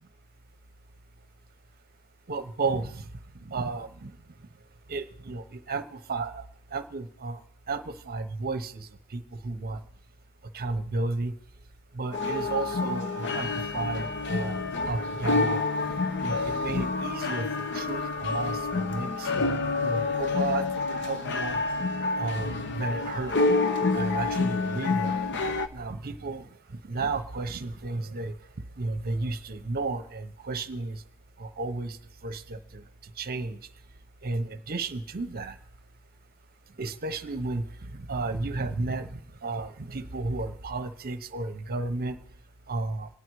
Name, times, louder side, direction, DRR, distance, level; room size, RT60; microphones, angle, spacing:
voice 1, 2.3-3.0 3.4-4.1 4.9-6.4 6.7-7.4 7.7-9.8 10.5-11.3 11.9-15.6 16.2-17.5 17.7-19.3 19.8-21.6 22.2-23.3 23.9-25.2 25.7-26.5 26.9-28.3 28.8-31.0 31.4-32.0 32.2-32.8 33.2-33.6 34.2-35.6 36.8-42.2 42.7-43.1, right 3 dB, 45° right, 10 dB, 0.9 m, -33 dB
sound 1, 12.1-25.7, left 3 dB, 55° left, 0.8 m, -28 dB
25.5 x 9.4 x 4.7 m, 0.75 s
head